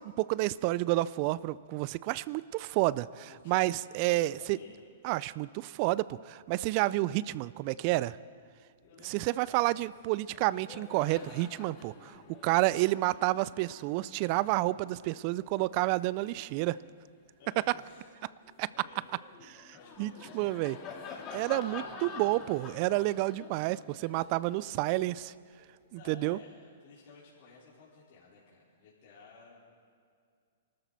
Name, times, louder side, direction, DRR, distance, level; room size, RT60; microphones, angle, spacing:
voice 1, 0.0-4.6 5.0-8.2 9.0-12.1 12.4-16.8 18.6-18.7 20.0-20.8 21.3-25.3 25.9-26.4, right 18 dB, 45° right, 19 dB, 0.3 m, -30 dB
voice 2, 3.3-3.8 4.3-4.8 8.8-9.6 12.4-12.7 17.4-18.1 18.6-19.3 19.7-21.0 22.8-23.4 25.8-29.5, left 4 dB, 55° left, -7 dB, 4.3 m, -55 dB
Laughter, 9.8-10.0 10.2-17.0 17.5-25.6, left 5 dB, 30° left, 2.2 m, -49 dB
24.0 x 13.0 x 4.1 m, 2.2 s
hypercardioid pair, 125°, 0 cm